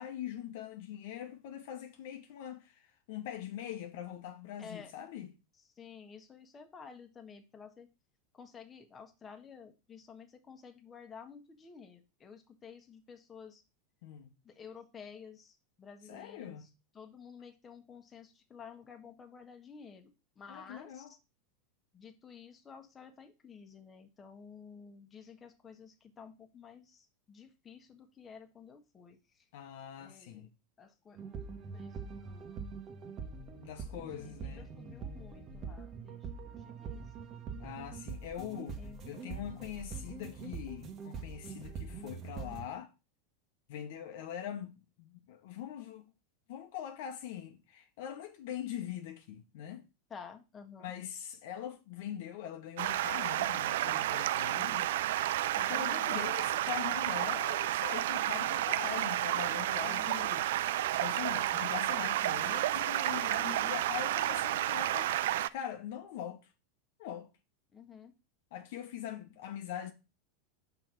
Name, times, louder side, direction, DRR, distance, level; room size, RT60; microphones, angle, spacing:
voice 1, 0.0-5.3 14.0-14.3 16.0-16.7 20.5-21.1 29.5-30.5 33.6-34.7 37.6-38.8 39.1-42.9 43.7-46.0 46.5-49.8 50.8-60.5 60.9-65.1 65.5-66.5 67.0-67.3 68.5-69.9, left 10 dB, 65° left, 1.0 m, -42 dB
voice 2, 4.6-4.9 5.8-7.9 8.4-13.6 14.4-15.5 15.8-16.6 16.9-21.0 21.9-29.2 30.0-30.5 30.8-32.6 34.0-37.0 38.8-39.4 50.1-50.9 55.7-56.2 59.9-60.3 63.3-63.8 67.7-68.1, left 6 dB, 25° left, 1.2 m, -52 dB
sound 1, 31.2-42.7, right 5 dB, 40° right, 1.4 m, -44 dB
Stream, 52.8-65.5, right 13 dB, 70° right, 0.3 m, -31 dB
5.8 x 4.0 x 6.1 m
hypercardioid pair, 100°, 0 cm